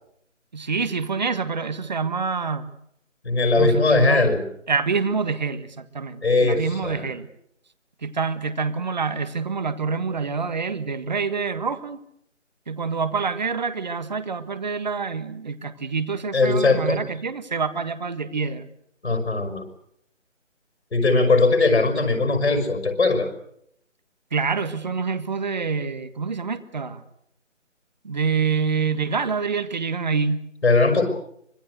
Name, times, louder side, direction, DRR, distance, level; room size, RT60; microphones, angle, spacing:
voice 1, 0.5-2.7 3.5-4.3 4.7-7.3 8.0-12.0 12.7-18.7 24.3-27.0 28.0-30.4, right 5 dB, 35° right, 13 dB, 1.6 m, -26 dB
voice 2, 3.2-4.4 6.2-7.1 16.3-17.0 19.0-19.6 20.9-23.3 30.6-31.0, left 3 dB, 60° left, 6 dB, 5.8 m, -20 dB
25.5 x 22.0 x 8.1 m, 0.73 s
figure-of-eight pair, 160°, 38 cm